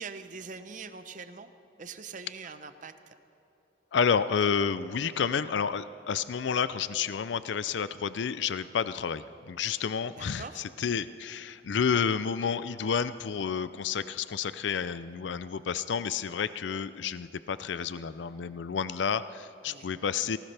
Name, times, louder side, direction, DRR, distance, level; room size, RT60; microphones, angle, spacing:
voice 1, 0.0-1.5 1.8-3.1 10.1-10.6 19.7-19.9, right 5 dB, 45° right, 10 dB, 0.7 m, -43 dB
voice 2, 3.9-20.4, left 6 dB, 80° left, 14 dB, 0.4 m, -30 dB
19.0 x 18.5 x 3.4 m, 3.0 s
head